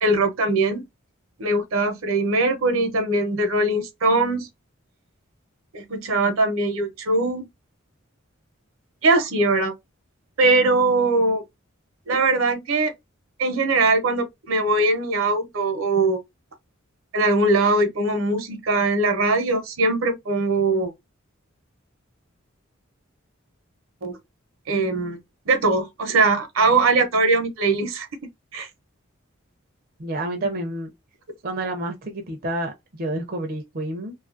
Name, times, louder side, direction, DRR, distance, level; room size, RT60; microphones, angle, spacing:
voice 1, 0.0-0.8 1.4-4.5 5.7-7.5 9.0-9.7 10.4-11.4 12.1-12.9 13.4-16.2 17.1-20.9 24.0-24.2 24.7-25.2 25.5-28.1 28.5-28.7, right 2 dB, 80° right, 0.7 m, -21 dB
voice 2, 30.0-30.9 31.4-34.1, right 1 dB, 45° right, 0.5 m, -29 dB
2.6 x 2.4 x 2.4 m
head